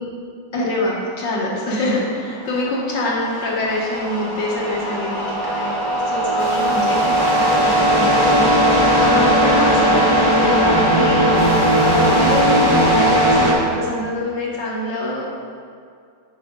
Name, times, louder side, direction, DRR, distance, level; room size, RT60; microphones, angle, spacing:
voice 1, 0.5-5.7 6.1-11.2 11.8-15.4, left 1 dB, 85° left, -4 dB, 2.0 m, -25 dB
sound 1, 2.4-13.5, right 1 dB, 20° left, 1.2 m, -17 dB
7.4 x 5.4 x 3.9 m, 2.2 s
omnidirectional pair, 1.9 m